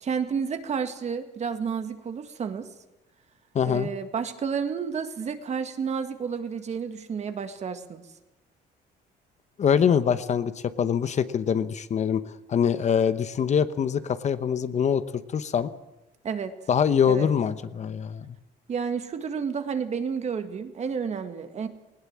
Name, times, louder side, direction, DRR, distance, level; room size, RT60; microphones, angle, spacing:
voice 1, 0.0-2.7 3.6-8.0 16.2-16.5 17.0-17.3 18.7-21.7, right 6 dB, 40° right, 8 dB, 1.9 m, -31 dB
voice 2, 3.5-3.9 9.6-10.5 10.8-15.0 15.3-15.7 16.7-18.4, left 7 dB, 45° left, 13 dB, 1.0 m, -24 dB
19.5 x 18.0 x 7.5 m, 0.96 s
cardioid pair, 110°, 17 cm